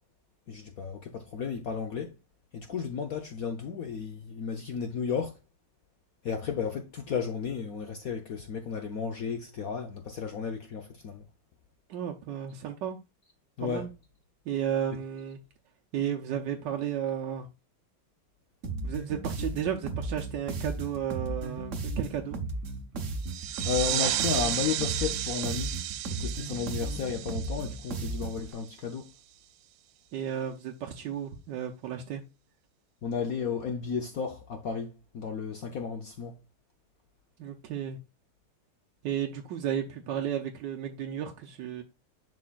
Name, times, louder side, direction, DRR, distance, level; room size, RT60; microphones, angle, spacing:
voice 1, 0.5-2.1 2.5-5.3 6.2-11.3 13.6-13.9 23.6-25.7 26.1-29.1 33.0-36.3, left 6 dB, 65° left, 0.9 m, -33 dB
voice 2, 11.9-13.0 13.6-13.9 14.5-15.4 15.9-17.5 18.8-22.4 30.1-32.2 37.4-38.0 39.0-41.8, right 9 dB, 65° right, 1.3 m, -33 dB
sound 1, 18.6-28.5, right 2 dB, 50° right, 1.0 m, -35 dB
sound 2, 23.2-28.6, right 13 dB, 85° right, 1.4 m, -33 dB
10.5 x 3.8 x 2.4 m
omnidirectional pair, 2.3 m